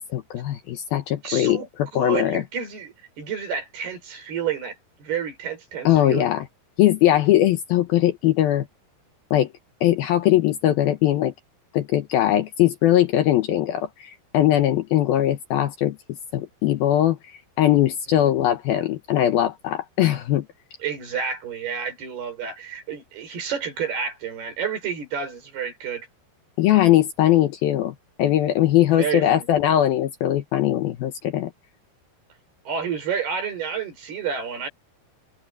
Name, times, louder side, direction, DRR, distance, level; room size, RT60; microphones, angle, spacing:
voice 1, 0.0-2.4 5.8-6.4 6.8-8.7 9.3-9.5 9.8-11.3 11.7-16.0 16.3-17.2 17.6-20.5 26.6-31.5, left 12 dB, 70° left, 2.5 m, -20 dB
voice 2, 1.2-4.7 5.0-6.3 18.1-18.4 20.8-26.1 29.0-29.5 32.7-34.7, right 7 dB, 60° right, 7.6 m, -30 dB
omnidirectional pair, 5.1 m